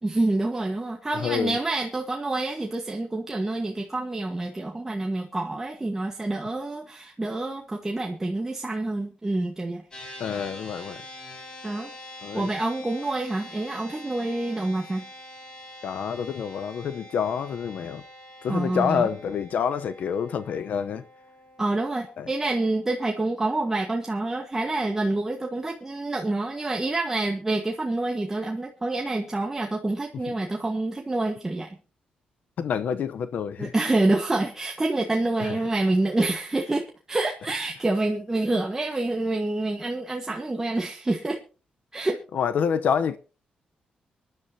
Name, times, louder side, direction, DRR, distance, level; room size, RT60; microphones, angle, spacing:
voice 1, 0.0-9.8 11.6-11.9 12.3-15.1 18.5-19.1 21.6-31.8 33.6-41.4 41.9-42.2, right 2 dB, 15° right, 1.4 m, -27 dB
voice 2, 1.2-1.6 10.2-11.0 12.2-12.5 15.8-18.0 18.4-21.0 22.2-22.3 32.6-33.7 35.4-35.6 42.3-43.2, left 7 dB, 70° left, 0.8 m, -27 dB
sound 1, 9.9-23.4, left 1 dB, 30° left, 4.9 m, -45 dB
25.0 x 10.5 x 2.8 m
cardioid pair, 120°, 3 cm